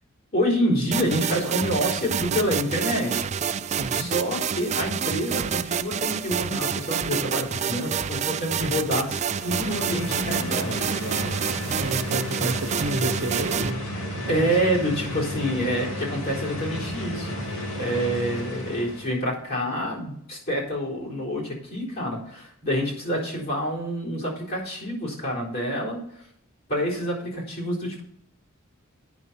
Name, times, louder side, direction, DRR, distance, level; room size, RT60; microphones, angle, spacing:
voice 1, 0.3-3.2 3.9-11.3 14.3-26.0 26.7-28.0, equal, 50° left, -5 dB, 3.9 m, -27 dB
sound 1, 0.9-13.7, right 7 dB, 35° right, 0.4 m, -28 dB
voice 2, 3.7-4.1 11.8-13.8 14.1-14.5, right 1 dB, 60° right, 6 dB, 1.1 m, -30 dB
sound 2, 9.2-19.2, equal, 75° left, 2.4 m, -33 dB
9.2 x 6.0 x 5.7 m, 0.72 s
head